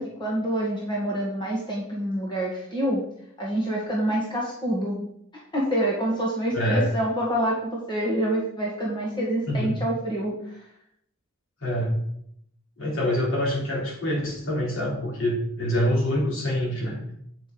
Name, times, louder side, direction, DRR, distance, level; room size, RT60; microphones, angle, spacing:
voice 1, 0.0-3.0 3.4-5.0 5.5-10.6, right 1 dB, 20° left, -4 dB, 1.9 m, -27 dB
voice 2, 6.5-6.9 9.5-9.8 11.6-11.9 12.8-17.0, equal, 65° left, -3 dB, 4.0 m, -25 dB
8.9 x 5.9 x 5.3 m, 0.71 s
head